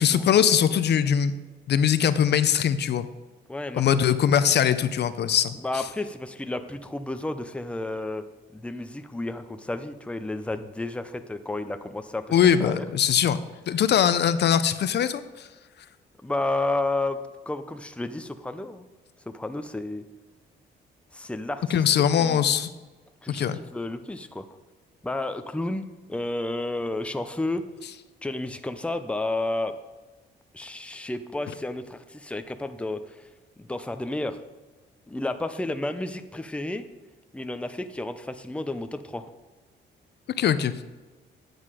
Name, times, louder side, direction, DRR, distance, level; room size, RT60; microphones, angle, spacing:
voice 1, 0.0-1.3 1.7-3.1 3.7-5.5 12.3-13.4 13.7-15.5 21.7-22.7 23.3-23.6 40.4-40.8, left 8 dB, 60° left, 13 dB, 0.6 m, -21 dB
voice 2, 3.5-3.9 5.6-8.2 8.5-12.3 12.6-12.8 16.2-17.2 17.5-18.9 19.3-20.0 21.1-22.4 23.2-23.4 23.7-24.5 25.0-27.6 28.2-29.7 30.5-33.3 33.6-34.4 35.1-36.8 37.3-39.3, left 2 dB, 5° left, 9 dB, 0.7 m, -31 dB
9.6 x 7.7 x 4.9 m, 1.3 s
cardioid pair, 90°, 20 cm